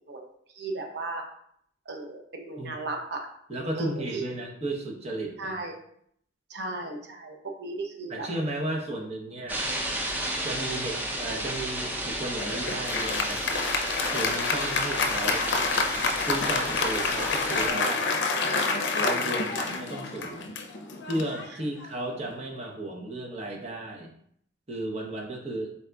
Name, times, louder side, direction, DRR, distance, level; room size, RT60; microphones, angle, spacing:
voice 1, 0.5-1.2 1.9-3.2 3.8-4.2 5.4-5.7 6.5-8.3, right 2 dB, 65° right, 2 dB, 0.7 m, -35 dB
voice 2, 3.5-5.6 8.1-9.6 10.4-13.4 14.1-15.5 16.2-18.5 19.0-20.5 21.0-24.1 24.7-25.7, right 1 dB, 35° right, -1 dB, 0.8 m, -34 dB
sound 1, 9.5-17.7, right 1 dB, 10° right, 0.5 m, -33 dB
Applause, 12.4-22.2, left 3 dB, 70° left, 0.5 m, -28 dB
4.2 x 3.8 x 2.3 m, 0.67 s
head